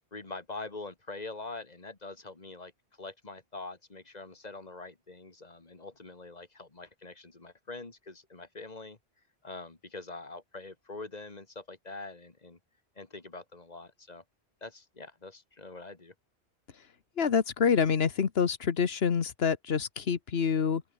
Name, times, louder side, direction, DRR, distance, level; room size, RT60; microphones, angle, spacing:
voice 1, 0.1-2.7 3.0-9.0 9.4-12.6 13.0-14.2 14.6-16.1, left 3 dB, 40° left, 2.2 m, -44 dB
voice 2, 17.2-20.8, left 6 dB, 65° left, 1.4 m, -27 dB
open air
omnidirectional pair, 1.1 m